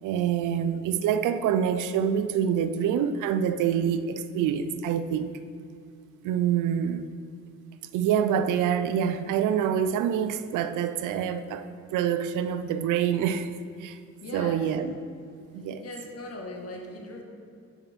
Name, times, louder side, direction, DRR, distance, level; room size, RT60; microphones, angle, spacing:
voice 1, 0.0-5.3 6.2-7.1 7.9-13.5 13.8-14.0 14.3-14.9 15.5-15.9, right 8 dB, 90° right, 11 dB, 0.6 m, -26 dB
voice 2, 14.2-14.7 15.8-17.2, left 2 dB, 50° left, 1 dB, 1.8 m, -39 dB
8.6 x 6.0 x 5.3 m, 2.4 s
cardioid pair, 90°, 30 cm